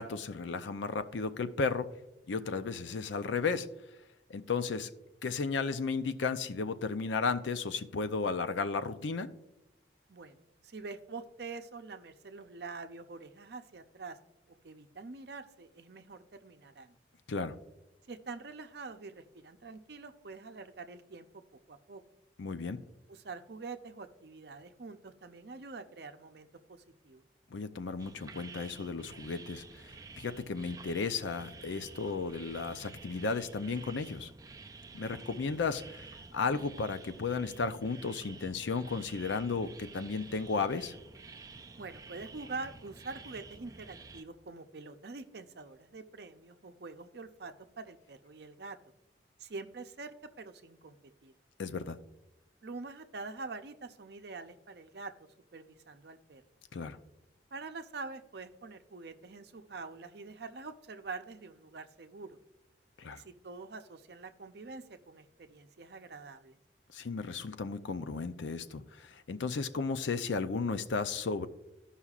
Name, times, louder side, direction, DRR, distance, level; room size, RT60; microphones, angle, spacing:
voice 1, 0.0-1.9 2.3-3.7 4.3-4.9 5.2-9.3 17.3-17.6 22.4-22.8 27.5-34.3 34.9-36.1 36.3-40.9 51.6-52.0 56.7-57.0 63.0-63.2 66.9-71.5, left 4 dB, 80° left, 11 dB, 0.5 m, -34 dB
voice 2, 10.1-14.2 14.5-17.0 18.1-21.3 21.7-22.0 23.1-27.2 41.8-48.8 49.4-51.0 51.2-51.3 52.6-55.1 55.5-56.4 57.5-62.4 63.1-66.6, right 3 dB, 60° right, 8 dB, 0.6 m, -45 dB
sound 1, 28.0-44.2, right 4 dB, 20° right, 0.4 m, -50 dB
15.0 x 5.6 x 2.4 m, 0.89 s
head